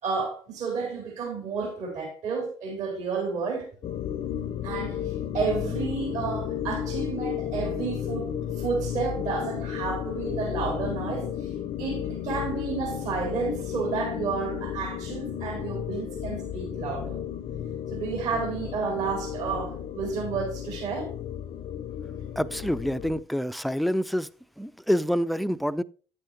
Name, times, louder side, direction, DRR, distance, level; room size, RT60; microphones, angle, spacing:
voice 1, 0.0-3.7 4.6-11.5 11.8-17.2 17.9-21.1, right 5 dB, 65° right, 4.1 m, -31 dB
sound 1, 3.8-23.2, left 9 dB, 45° left, 0.6 m, -33 dB
voice 2, 22.4-24.3 24.6-25.8, equal, ahead, 0.4 m, -27 dB
9.7 x 8.8 x 2.7 m
hypercardioid pair, 60°, 13 cm